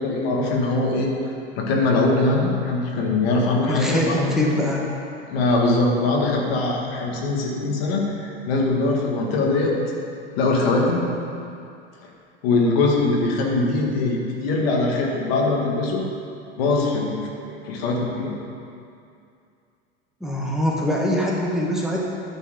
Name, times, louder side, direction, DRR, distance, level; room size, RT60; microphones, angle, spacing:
voice 1, 0.0-4.2 5.3-9.8 10.4-11.0 12.4-16.0 16.6-18.3, left 2 dB, 70° left, -1 dB, 1.9 m, -22 dB
voice 2, 3.7-4.9 20.2-22.0, left 1 dB, ahead, -4 dB, 1.5 m, -23 dB
9.6 x 4.5 x 7.6 m, 2.5 s
hypercardioid pair, 100°, 31 cm